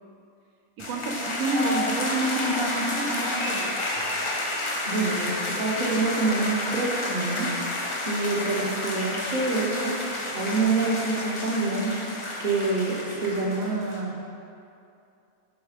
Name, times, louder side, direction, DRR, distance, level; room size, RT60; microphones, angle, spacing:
sound 1, 0.8-14.0, left 2 dB, 35° left, 0.5 m, -30 dB
voice 1, 0.8-3.9, right 2 dB, 80° right, 1 dB, 1.1 m, -28 dB
voice 2, 4.5-7.6 8.0-12.0 12.4-14.2, right 3 dB, 40° right, -2 dB, 0.9 m, -27 dB
6.3 x 4.6 x 4.9 m, 2.6 s
omnidirectional pair, 1.5 m